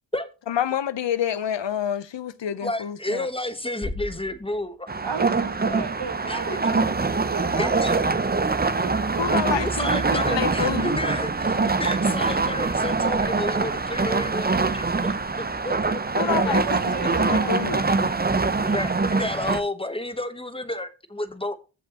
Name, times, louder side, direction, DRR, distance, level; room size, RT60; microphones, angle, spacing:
voice 1, 0.5-3.3 9.1-11.0 16.1-17.8, left 9 dB, 90° left, 0.8 m, -28 dB
voice 2, 2.6-4.9 6.3-6.6 7.6-8.0 9.4-15.1 15.6-16.5 18.6-21.6, left 1 dB, 15° left, 1.0 m, -31 dB
Bass drum, 3.8-5.5, left 2 dB, 45° left, 3.6 m, -38 dB
sound 1, 4.9-19.6, right 3 dB, 20° right, 0.7 m, -24 dB
voice 3, 5.0-8.1 8.6-9.7 16.5-17.8, right 6 dB, 70° right, 1.4 m, -35 dB
15.0 x 5.3 x 2.9 m
wide cardioid pair, 110°, 42 cm